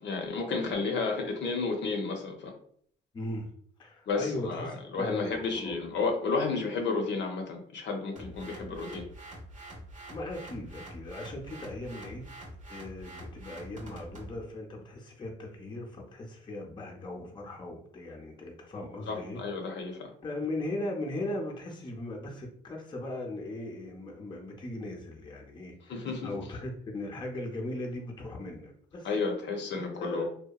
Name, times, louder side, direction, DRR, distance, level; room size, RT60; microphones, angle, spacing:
voice 1, 0.0-2.5 4.1-9.0 19.1-20.1 25.9-26.3 29.0-30.3, left 4 dB, 65° left, 2 dB, 0.6 m, -32 dB
voice 2, 3.1-3.5 3.8-6.0 8.1-8.8 10.1-12.3 12.7-19.7 20.2-29.1 29.7-30.3, left 1 dB, 25° left, 1 dB, 0.5 m, -38 dB
sound 1, 8.2-14.4, right 1 dB, 40° right, 0.7 m, -46 dB
2.8 x 2.1 x 2.3 m, 0.62 s
cardioid pair, 90°, 20 cm